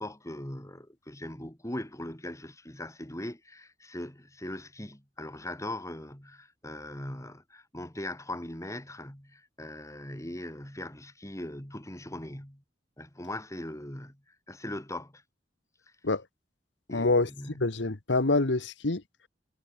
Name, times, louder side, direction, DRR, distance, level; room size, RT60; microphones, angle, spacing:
voice 1, 0.0-12.6 13.0-14.2 14.5-15.2 16.9-17.6, left 1 dB, 15° left, 3.7 m, -40 dB
voice 2, 16.9-19.0, left 2 dB, 80° left, 1.4 m, -26 dB
head